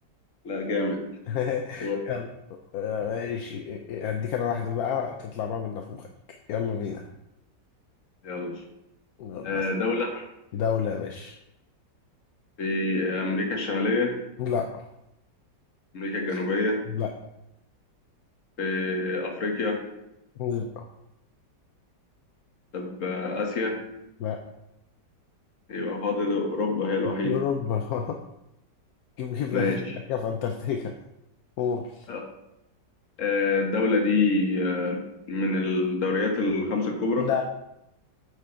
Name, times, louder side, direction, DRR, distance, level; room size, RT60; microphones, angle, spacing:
voice 1, 0.4-1.1 1.8-2.0 8.2-8.6 9.4-10.2 12.6-14.1 15.9-16.9 18.6-19.8 22.7-23.8 25.7-27.4 29.5-30.0 32.1-32.2 33.2-37.3, left 3 dB, 50° left, 2 dB, 1.5 m, -26 dB
voice 2, 1.3-2.3 2.7-6.1 6.5-7.0 9.2-9.6 10.5-11.4 14.4-14.9 16.9-17.1 20.4-20.8 24.2-24.4 27.2-28.2 29.2-30.9 31.6-32.1 37.2-37.4, left 7 dB, 65° left, 4 dB, 1.0 m, -29 dB
8.1 x 5.2 x 4.4 m, 0.87 s
omnidirectional pair, 1.9 m